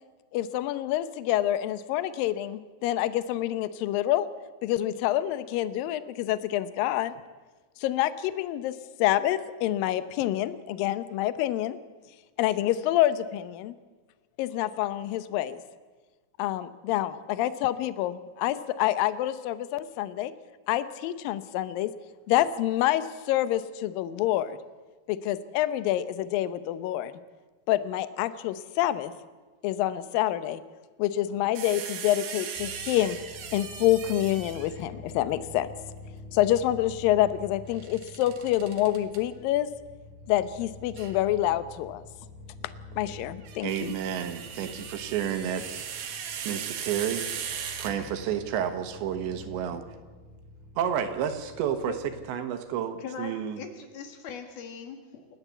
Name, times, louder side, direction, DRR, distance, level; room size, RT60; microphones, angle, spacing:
voice 1, 0.3-4.3 4.6-7.1 7.8-8.7 9.0-11.8 12.4-13.8 14.4-15.6 16.4-20.3 20.7-21.9 22.3-24.6 25.1-27.1 27.7-29.1 29.6-30.6 31.0-33.2 33.5-35.7 36.3-39.7 40.3-42.0 43.0-43.9, left 13 dB, 80° left, 13 dB, 2.0 m, -27 dB
sound 1, 31.6-34.9 37.7-39.2 41.0-41.2 43.3-48.4, right 8 dB, 60° right, 3.3 m, -38 dB
sound 2, 32.5-52.3, left 3 dB, 5° left, 1.4 m, -47 dB
voice 2, 43.6-45.8 46.5-47.4 47.8-49.8 50.8-51.9 52.3-53.6, right 9 dB, 80° right, 7 dB, 3.6 m, -30 dB
voice 3, 53.0-55.3, left 6 dB, 65° left, 5 dB, 3.4 m, -40 dB
28.5 x 12.5 x 8.3 m, 1.3 s
omnidirectional pair, 5.2 m